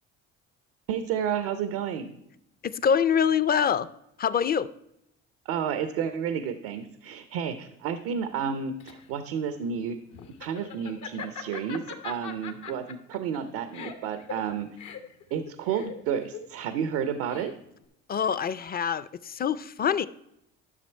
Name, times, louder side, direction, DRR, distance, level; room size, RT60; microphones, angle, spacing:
voice 1, 0.9-2.2 5.4-10.0 10.4-14.8 15.3-17.5, right 7 dB, 90° right, 10 dB, 0.7 m, -31 dB
voice 2, 2.6-3.9 4.2-4.7 18.1-20.1, left 7 dB, 30° left, 16 dB, 0.5 m, -25 dB
Laughter, 8.4-17.8, left 7 dB, 70° left, 1.1 m, -42 dB
11.0 x 6.1 x 4.4 m, 0.80 s
supercardioid pair, 80°, 31 cm